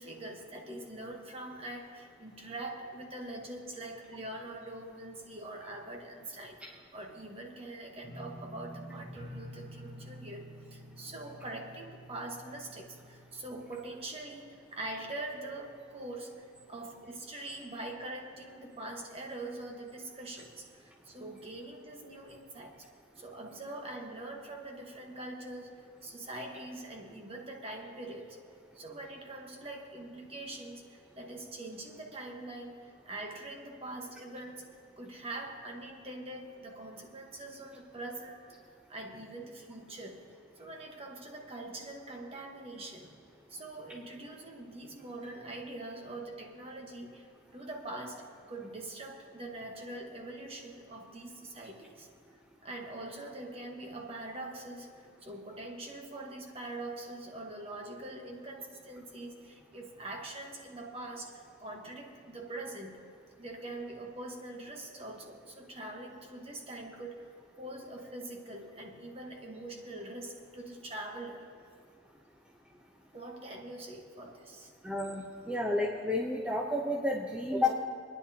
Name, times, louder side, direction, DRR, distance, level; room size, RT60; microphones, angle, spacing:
voice 1, 0.0-22.9 23.2-28.5 28.7-38.5 38.9-43.1 43.5-52.1 52.6-63.1 63.4-67.3 67.6-71.5 73.1-74.7, right 2 dB, 30° right, 1 dB, 1.3 m, -43 dB
sound 1, 8.0-14.9 15.2-15.7 16.1-16.2, equal, 70° right, 2.7 m, -49 dB
voice 2, 74.8-77.7, left 2 dB, 5° right, -3 dB, 0.8 m, -31 dB
27.5 x 10.0 x 2.8 m, 2.4 s
head